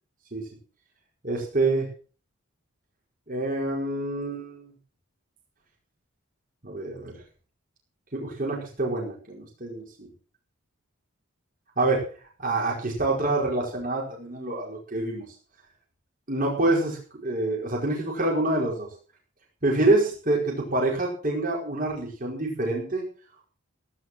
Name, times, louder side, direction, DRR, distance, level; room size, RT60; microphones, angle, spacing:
voice 1, 1.2-1.9 3.3-4.7 6.6-7.1 8.1-10.1 11.8-12.0 12.4-15.2 16.3-18.9 19.6-23.0, right 2 dB, 40° right, -2 dB, 5.0 m, -26 dB
17.0 x 10.0 x 6.2 m, 0.40 s
head